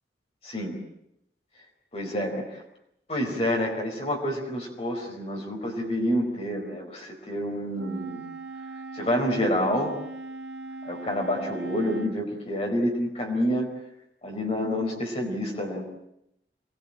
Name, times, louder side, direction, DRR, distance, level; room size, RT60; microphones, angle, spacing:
voice 1, 0.4-0.8 1.9-2.6 3.1-8.2 8.9-10.0 10.8-13.7 14.2-15.8, equal, 35° left, 0 dB, 4.8 m, -28 dB
Wind instrument woodwind instrument, 7.7-12.2, right 2 dB, 70° right, 1.8 m, -39 dB
26.5 x 21.0 x 8.8 m, 0.79 s
head